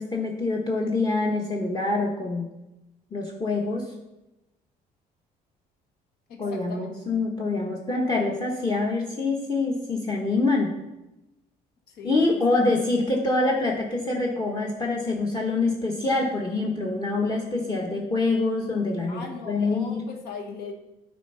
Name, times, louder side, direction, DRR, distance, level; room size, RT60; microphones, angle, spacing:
voice 1, 0.0-2.5 3.1-3.9 6.4-10.7 12.0-20.1, left 3 dB, 25° left, -1 dB, 1.2 m, -25 dB
voice 2, 6.3-6.8 12.0-12.1 19.1-20.7, left 5 dB, 70° left, 3 dB, 1.2 m, -38 dB
9.2 x 4.4 x 5.6 m, 0.96 s
cardioid pair, 110°, 17 cm